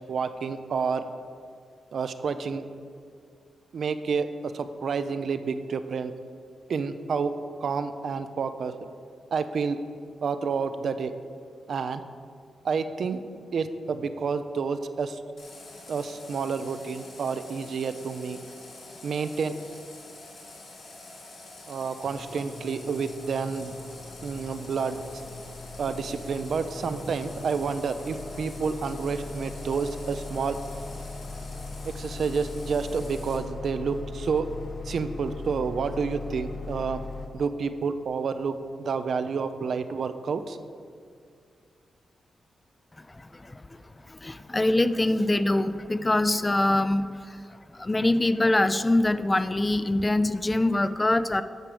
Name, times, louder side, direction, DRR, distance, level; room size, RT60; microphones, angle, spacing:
voice 1, 0.1-1.0 1.9-2.7 3.7-6.1 6.7-7.3 7.6-8.8 9.3-9.8 10.2-11.1 11.7-12.0 12.6-13.2 13.5-15.2 15.9-18.4 19.0-19.5 21.7-23.7 24.2-25.0 25.8-30.6 31.9-34.5 34.8-37.0 37.3-40.6, right 5 dB, 70° right, 10 dB, 0.5 m, -29 dB
Water tap faucet, 15.4-33.4, left 2 dB, 70° left, 2.4 m, -46 dB
sound 1, 22.0-37.3, left 3 dB, 45° left, 0.9 m, -39 dB
voice 2, 43.0-43.6 44.1-47.4 47.7-51.4, left 2 dB, 20° left, 12 dB, 0.4 m, -24 dB
9.0 x 4.8 x 6.9 m, 2.2 s
cardioid pair, 70°, 0 cm